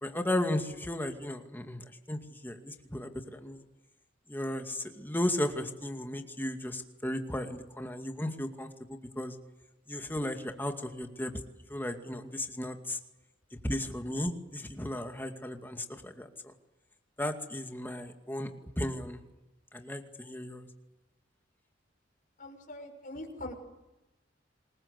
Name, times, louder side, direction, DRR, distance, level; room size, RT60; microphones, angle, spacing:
voice 1, 0.0-3.6 4.3-9.4 9.9-11.3 11.7-13.0 13.5-16.5 17.2-18.5 18.8-19.2 19.7-20.7, left 1 dB, 10° left, 5 dB, 2.3 m, -35 dB
voice 2, 22.4-23.5, left 1 dB, 45° left, 1 dB, 6.1 m, -42 dB
27.0 x 21.5 x 8.3 m, 1.0 s
head